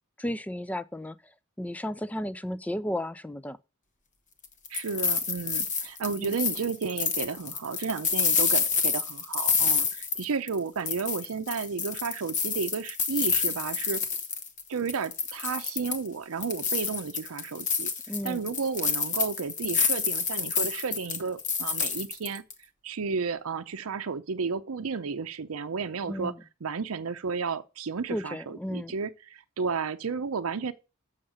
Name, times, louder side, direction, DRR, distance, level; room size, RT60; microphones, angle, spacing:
voice 1, 0.2-1.2 1.6-3.6 6.2-6.4 18.1-18.4 26.1-26.4 28.1-28.9, left 1 dB, 5° left, 0.4 m, -33 dB
sound 1, 4.4-10.6 10.9-14.6 14.9-16.1 16.4-22.5, left 6 dB, 35° left, 1.0 m, -28 dB
voice 2, 4.7-14.0 14.7-17.9 18.2-22.4 22.8-26.3 26.6-30.7, right 5 dB, 75° right, 0.6 m, -32 dB
7.2 x 6.6 x 4.9 m
head